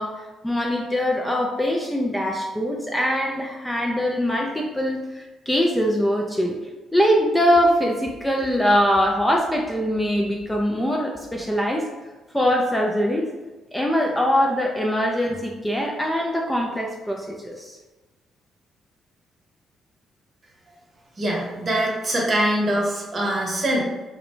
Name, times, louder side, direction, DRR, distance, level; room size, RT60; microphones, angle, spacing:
voice 1, 0.0-6.6 6.9-11.9 12.3-13.3 13.7-17.8, equal, 5° left, 0 dB, 0.3 m, -22 dB
voice 2, 21.2-23.8, right 1 dB, 40° right, -2 dB, 0.8 m, -23 dB
2.5 x 2.1 x 2.9 m, 1.1 s
cardioid pair, 90°, 0 cm